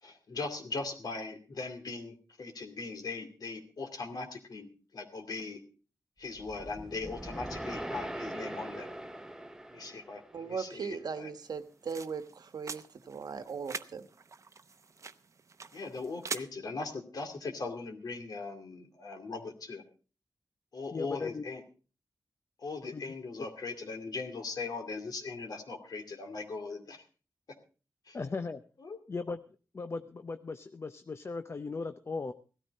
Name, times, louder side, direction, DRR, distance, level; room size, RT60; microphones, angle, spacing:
voice 1, 0.0-5.6 6.2-8.9 9.7-11.3 15.7-19.8 20.7-21.6 22.6-27.0 28.1-28.2 28.8-29.0, left 3 dB, 70° left, 4 dB, 2.4 m, -40 dB
sound 1, 6.3-10.7, right 1 dB, 10° right, 0.8 m, -41 dB
voice 2, 10.3-14.1, right 5 dB, 75° right, 9 dB, 1.3 m, -38 dB
sound 2, 11.4-16.4, right 4 dB, 50° right, 0.7 m, -44 dB
voice 3, 20.9-21.5 22.9-23.0 28.1-28.6 29.1-29.4 29.7-32.3, left 4 dB, 40° left, 10 dB, 0.6 m, -37 dB
16.5 x 13.0 x 4.1 m, 0.36 s
wide cardioid pair, 110°, 7 cm